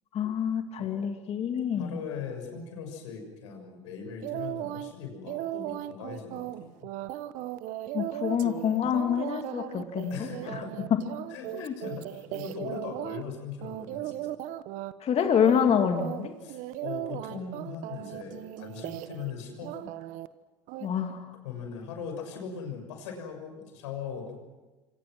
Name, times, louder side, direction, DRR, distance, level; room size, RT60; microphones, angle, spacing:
voice 1, 0.1-2.0 7.9-10.6 10.9-11.0 11.5-11.7 15.0-16.3 20.8-21.3, left 8 dB, 45° left, 5 dB, 2.6 m, -27 dB
voice 2, 1.7-6.7 10.1-10.9 11.3-14.4 16.4-19.9 21.4-24.4, left 6 dB, 80° left, 4 dB, 6.4 m, -40 dB
sound 1, 4.2-4.9 5.3-13.2 13.6-14.9 15.2-15.7 16.0-19.3 19.6-20.3 20.7-20.9, right 14 dB, 60° right, 1.2 m, -37 dB
27.5 x 25.0 x 6.2 m, 1.2 s
hypercardioid pair, 75°, 15 cm